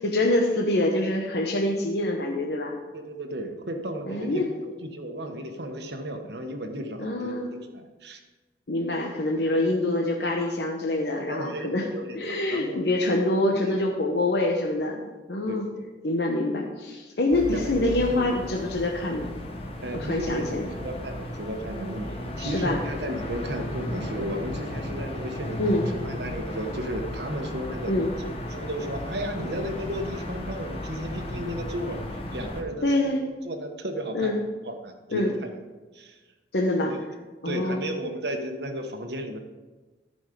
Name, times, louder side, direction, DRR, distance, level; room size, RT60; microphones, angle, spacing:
voice 1, 0.0-2.7 4.1-4.5 7.0-7.5 8.7-11.9 12.1-15.7 16.0-19.3 19.9-20.7 22.4-22.8 25.6-25.9 27.9-28.1 32.8-33.2 34.1-34.4 35.1-35.3 36.5-37.0 37.4-37.8, left 1 dB, 65° left, 0 dB, 1.0 m, -25 dB
voice 2, 2.9-8.2 11.1-12.9 13.5-13.9 15.5-15.9 17.5-18.3 19.8-27.9 28.2-32.0 32.3-32.9 33.4-34.3 34.6-35.6 35.9-36.2 36.8-37.0 37.4-39.4, right 1 dB, 70° right, 5 dB, 1.2 m, -34 dB
sound 1, 17.3-32.6, left 1 dB, 35° left, 1.2 m, -35 dB
13.5 x 5.3 x 5.1 m, 1.2 s
head